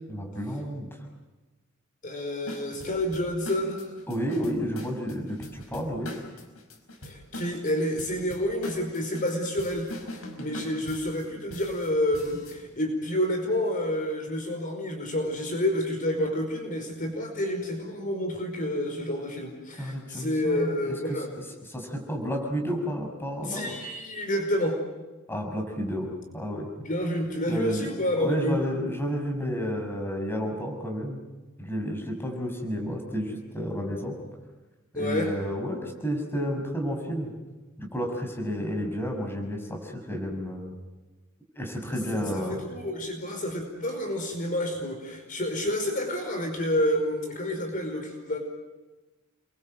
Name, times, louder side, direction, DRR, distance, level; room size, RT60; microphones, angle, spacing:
voice 1, 0.1-0.9 4.1-6.2 19.8-21.4 21.7-23.7 25.3-26.1 26.3-26.7 27.5-27.9 28.2-31.2 31.6-34.1 34.9-37.3 37.8-40.7 41.5-42.6, equal, 10° left, 1 dB, 6.2 m, -31 dB
voice 2, 2.0-4.0 7.0-21.3 23.4-24.8 26.8-28.6 34.9-35.3 42.1-48.4, left 1 dB, 40° left, 3 dB, 5.1 m, -29 dB
sound 1, 2.5-12.6, left 1 dB, 70° left, 5.3 m, -42 dB
30.0 x 23.5 x 7.8 m, 1.2 s
head